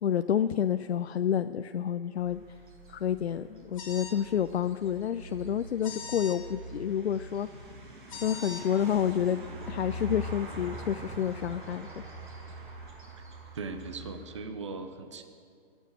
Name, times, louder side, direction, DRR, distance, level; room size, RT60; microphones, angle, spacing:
voice 1, 0.0-2.4 2.9-7.5 8.2-11.9, left 9 dB, 80° left, 10 dB, 0.5 m, -29 dB
sound 1, 2.1-14.4, right 1 dB, 55° right, 5.0 m, -43 dB
sound 2, 3.7-4.2 5.8-6.4 8.1-8.6, left 5 dB, 30° left, 1.3 m, -41 dB
voice 2, 13.6-15.2, right 4 dB, 30° right, 8 dB, 0.7 m, -38 dB
22.0 x 7.3 x 7.6 m, 2.3 s
hypercardioid pair, 175°, 32 cm